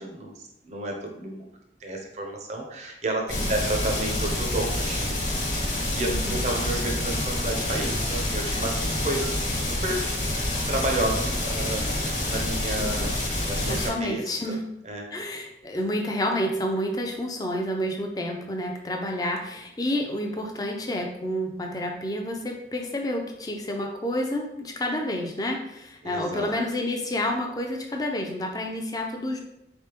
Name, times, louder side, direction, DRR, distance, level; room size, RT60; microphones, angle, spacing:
voice 1, 0.0-1.5 1.8-5.2 5.7-10.0 10.7-13.1 13.5-14.6 14.8-15.1 26.0-26.6, right 2 dB, 40° right, 1 dB, 0.6 m, -31 dB
sound 1, 3.3-13.9, left 1 dB, 45° left, 1.3 m, -27 dB
voice 2, 6.0-6.4 12.8-13.1 13.7-14.6 15.1-29.4, left 1 dB, 20° left, 2 dB, 0.5 m, -29 dB
4.1 x 3.4 x 2.9 m, 0.84 s
head